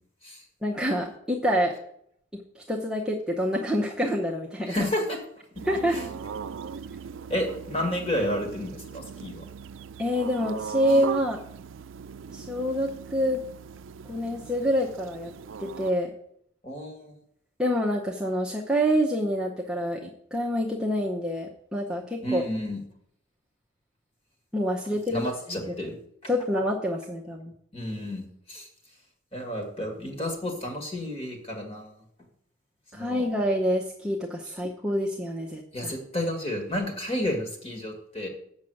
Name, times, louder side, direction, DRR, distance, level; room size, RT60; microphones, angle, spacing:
voice 1, 0.6-1.7 2.5-4.7 5.7-6.0 10.0-11.4 12.3-13.4 14.1-15.3 15.6-16.1 17.6-22.4 24.5-25.2 26.3-27.5 32.9-35.9, equal, 5° right, -3 dB, 0.8 m, -27 dB
voice 2, 4.7-6.1 7.3-9.5 16.6-17.2 22.2-22.8 25.1-26.0 27.7-29.0 29.3-31.9 32.9-33.2 34.5-34.6 35.7-38.3, left 1 dB, 30° left, 3 dB, 1.9 m, -31 dB
sound 1, 5.5-15.9, right 6 dB, 75° right, 0.4 m, -39 dB
7.3 x 6.3 x 7.7 m, 0.70 s
head